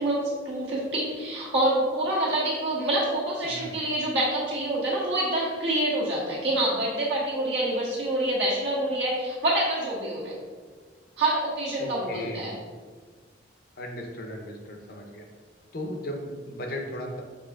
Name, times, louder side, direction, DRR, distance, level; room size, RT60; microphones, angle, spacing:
voice 1, 0.0-10.3 11.2-12.5, right 1 dB, 70° right, -6 dB, 1.5 m, -26 dB
voice 2, 3.4-3.8 11.8-12.6 13.8-15.2 15.7-17.2, left 1 dB, 55° left, 1 dB, 0.7 m, -36 dB
6.5 x 3.0 x 2.3 m, 1.5 s
head